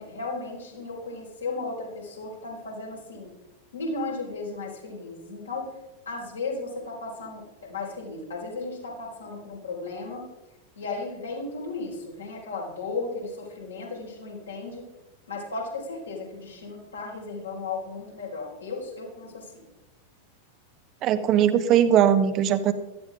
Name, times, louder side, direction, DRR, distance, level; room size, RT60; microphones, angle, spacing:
voice 1, 0.0-3.3 3.7-5.7 6.1-10.3 10.8-14.8 15.3-19.5, left 3 dB, 75° left, -3 dB, 5.1 m, -35 dB
voice 2, 21.0-22.7, right 9 dB, 35° right, 10 dB, 0.9 m, -20 dB
16.5 x 13.0 x 3.8 m, 1.0 s
figure-of-eight pair, 90°, 0 cm